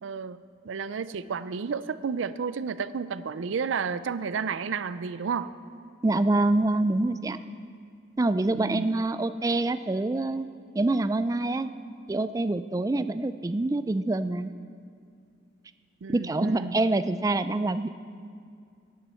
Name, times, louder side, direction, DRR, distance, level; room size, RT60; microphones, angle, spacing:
voice 1, 0.0-5.5 8.5-8.9 16.0-16.7, right 5 dB, 85° right, 15 dB, 0.4 m, -32 dB
voice 2, 6.0-7.4 8.2-10.5 10.8-11.7 12.1-14.5 16.1-17.9, right 2 dB, 20° right, 12 dB, 0.3 m, -26 dB
16.5 x 11.0 x 4.4 m, 2.3 s
head